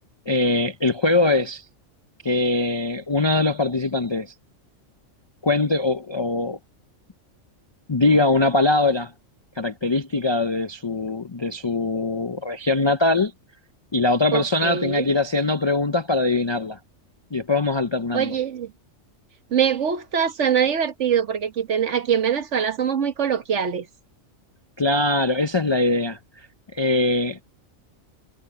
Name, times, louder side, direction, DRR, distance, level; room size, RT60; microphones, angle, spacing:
voice 1, 0.3-1.6 2.2-4.3 5.4-6.6 7.9-9.1 9.6-13.3 13.9-16.8 17.3-18.3 24.8-26.2 26.7-27.5, left 2 dB, 35° left, 0.4 m, -22 dB
voice 2, 14.3-15.1 18.1-18.7 19.5-23.9, right 8 dB, 65° right, 1.4 m, -23 dB
omnidirectional pair, 1.4 m